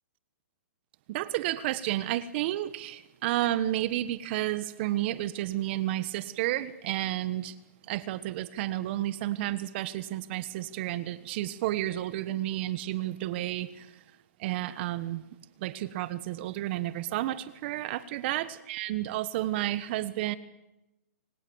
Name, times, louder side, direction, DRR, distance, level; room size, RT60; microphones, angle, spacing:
voice 1, 1.1-7.5 7.9-13.9 14.4-15.2 15.6-20.4, right 14 dB, 40° right, 16 dB, 1.3 m, -31 dB
27.0 x 26.5 x 7.2 m, 0.95 s
hypercardioid pair, 145°, 9 cm